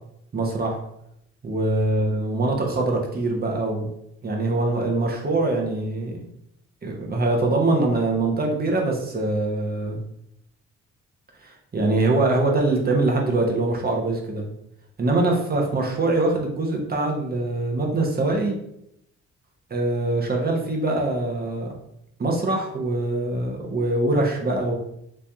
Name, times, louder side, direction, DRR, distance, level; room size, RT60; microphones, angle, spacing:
voice 1, 0.3-0.8 1.4-3.9 4.2-6.1 6.8-10.0 11.4-14.5 15.0-18.6 19.7-21.7 22.2-24.7, right 2 dB, 30° right, 0 dB, 1.0 m, -23 dB
3.3 x 2.8 x 3.5 m, 0.78 s
cardioid pair, 90°, 30 cm